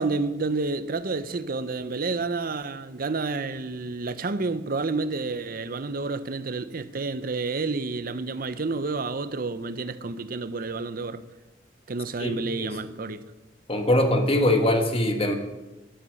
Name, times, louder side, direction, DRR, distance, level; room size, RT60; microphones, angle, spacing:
voice 1, 0.0-11.2 11.9-13.2, right 3 dB, 55° right, 0.7 m, -30 dB
voice 2, 13.7-15.3, left 1 dB, 30° left, 1.6 m, -22 dB
12.5 x 11.5 x 5.3 m
head